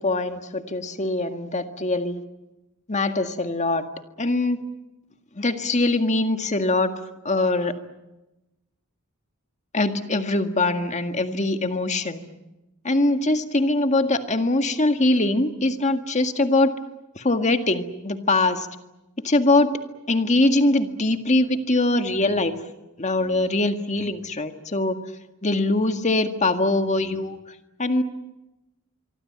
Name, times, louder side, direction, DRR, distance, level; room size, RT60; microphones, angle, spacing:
voice 1, 0.0-2.2 2.9-3.8 4.2-4.6 5.4-6.9 7.2-7.7 9.7-12.2 12.8-16.7 17.1-18.7 19.2-19.7 20.1-22.5 23.0-25.0 25.4-27.4 27.8-28.0, left 2 dB, 30° left, 7 dB, 1.9 m, -22 dB
24.5 x 24.5 x 8.7 m, 0.99 s
head